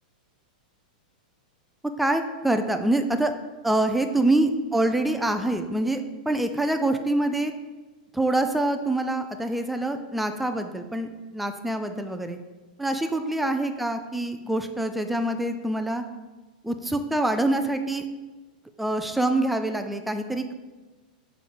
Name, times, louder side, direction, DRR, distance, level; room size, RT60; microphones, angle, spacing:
voice 1, 2.0-3.3 3.6-7.5 8.1-12.4 12.8-16.0 16.6-18.1 18.8-20.5, right 1 dB, ahead, 7 dB, 0.3 m, -25 dB
6.0 x 4.8 x 3.9 m, 1.3 s
supercardioid pair, 160°, 5 cm